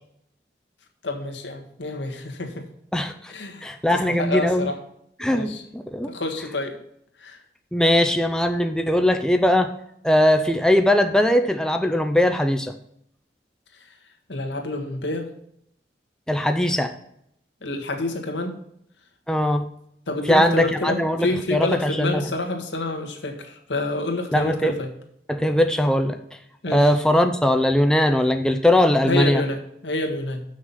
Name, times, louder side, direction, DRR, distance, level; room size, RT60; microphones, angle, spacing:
voice 1, 1.0-2.6 3.3-4.8 5.3-5.6 6.0-6.8 7.2-7.4 14.3-15.2 17.6-18.6 20.1-24.9 26.6-26.9 29.0-29.6 29.8-30.4, left 2 dB, 85° left, 3 dB, 1.7 m, -28 dB
voice 2, 2.9-3.3 3.6-4.7 5.2-6.1 7.7-9.7 10.0-12.7 16.3-16.9 19.3-19.6 20.3-22.3 24.3-24.7 25.3-26.2 26.7-29.4, left 1 dB, 5° left, 6 dB, 0.5 m, -20 dB
7.8 x 6.2 x 5.6 m, 0.72 s
head